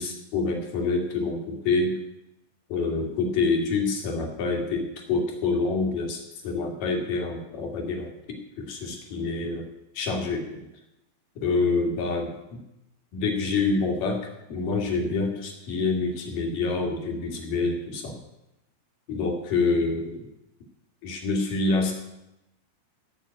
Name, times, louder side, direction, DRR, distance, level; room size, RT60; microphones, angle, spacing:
voice 1, 0.0-1.9 2.7-9.7 10.0-10.7 11.4-12.6 13.1-18.2 19.1-20.3 21.0-21.9, left 3 dB, 55° left, 1 dB, 3.5 m, -27 dB
15.5 x 6.3 x 8.8 m, 0.88 s
omnidirectional pair, 5.3 m